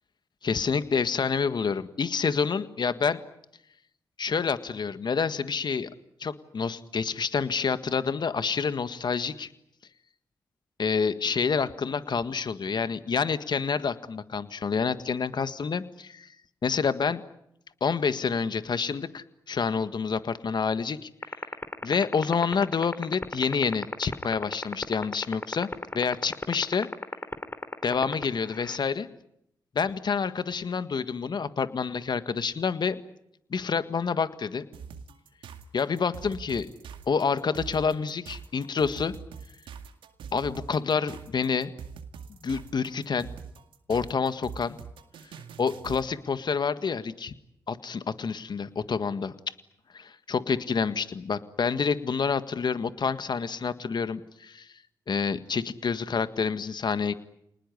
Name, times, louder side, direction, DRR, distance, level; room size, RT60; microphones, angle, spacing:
voice 1, 0.4-3.2 4.2-5.9 6.2-9.5 10.8-16.3 16.6-17.2 17.8-21.4 21.8-25.7 25.9-26.9 27.8-29.1 29.7-33.0 33.5-34.6 35.7-36.7 37.1-39.1 40.3-41.7 42.4-43.3 43.9-44.8 45.6-47.3 47.7-49.3 50.3-54.7 55.1-57.1, left 5 dB, 60° left, 12 dB, 1.7 m, -28 dB
sound 1, 21.2-28.8, left 2 dB, 25° left, 3.5 m, -31 dB
sound 2, 34.7-46.1, right 6 dB, 85° right, 2.1 m, -43 dB
28.5 x 20.0 x 9.8 m, 0.79 s
supercardioid pair, 40°, 9 cm